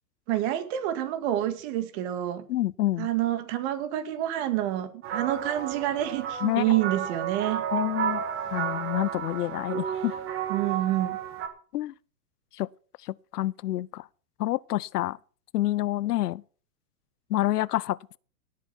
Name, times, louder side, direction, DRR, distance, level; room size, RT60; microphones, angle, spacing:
voice 1, 0.3-2.5 3.0-7.6 10.5-11.2, right 13 dB, 45° right, 2.2 m, -28 dB
voice 2, 2.5-3.1 6.4-6.6 7.7-8.2 8.5-10.2 11.7-11.9 12.6-12.7 13.3-14.0 14.4-15.2 15.5-16.4 17.3-18.2, left 15 dB, 80° left, 0.6 m, -28 dB
sound 1, 5.0-11.5, right 9 dB, 25° right, 1.9 m, -32 dB
17.0 x 8.5 x 4.4 m
hypercardioid pair, 130°, 46 cm